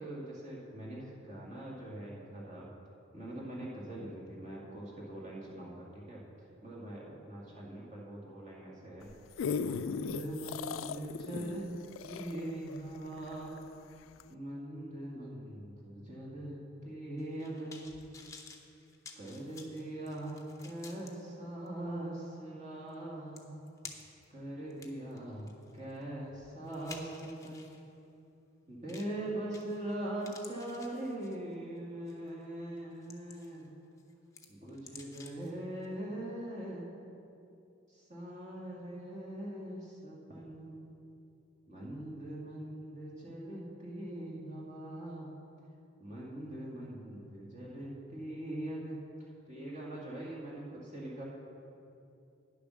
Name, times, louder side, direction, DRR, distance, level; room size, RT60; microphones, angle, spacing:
voice 1, 0.0-2.7 3.1-6.2 6.6-9.1 9.6-11.7 12.0-13.6 14.3-17.9 19.1-23.6 24.3-27.8 28.7-33.7 34.5-36.9 37.9-41.0 41.7-45.3 46.0-51.2, right 1 dB, 35° right, -4 dB, 2.0 m, -42 dB
sound 1, 9.0-13.7 14.2-14.3, left 6 dB, 80° left, 0.3 m, -38 dB
sound 2, 17.2-21.1 21.7-21.8 22.9-23.0 23.4-24.2 24.7-27.8 28.9-29.2 29.5-29.9 30.2-31.5 32.1-32.3 32.8-33.7 34.0-35.5 35.8-35.9, left 4 dB, 15° left, 0.7 m, -52 dB
9.8 x 6.8 x 6.3 m, 2.7 s
head